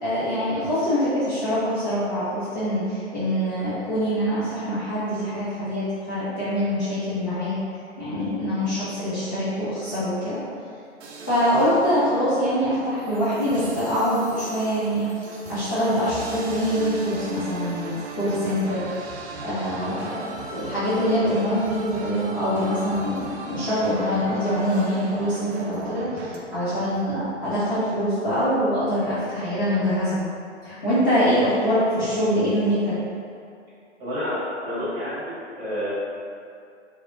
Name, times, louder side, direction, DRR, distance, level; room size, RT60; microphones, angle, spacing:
voice 1, 0.0-7.6 8.0-10.4 11.3-15.1 15.5-18.8 19.4-20.2 20.5-30.2 30.6-32.9, equal, 20° left, -14 dB, 0.3 m, -24 dB
sound 1, 11.0-26.4, right 3 dB, 60° right, 0.5 m, -37 dB
voice 2, 34.0-35.9, equal, 10° right, -12 dB, 1.2 m, -29 dB
2.6 x 2.2 x 2.6 m, 2.5 s
figure-of-eight pair, 110°, 36 cm